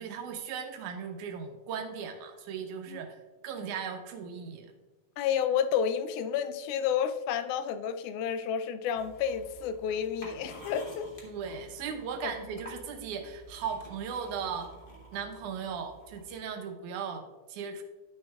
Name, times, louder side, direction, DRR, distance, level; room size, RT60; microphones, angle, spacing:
voice 1, 0.0-3.2 3.4-4.7 11.2-14.7 15.1-17.8, right 6 dB, 90° right, 5 dB, 2.3 m, -37 dB
voice 2, 5.2-11.1 12.2-12.3, left 8 dB, 90° left, 11 dB, 2.0 m, -30 dB
sound 1, 8.9-16.4, right 1 dB, 65° left, 0.5 m, -50 dB
11.0 x 6.3 x 2.3 m, 1.2 s
omnidirectional pair, 3.4 m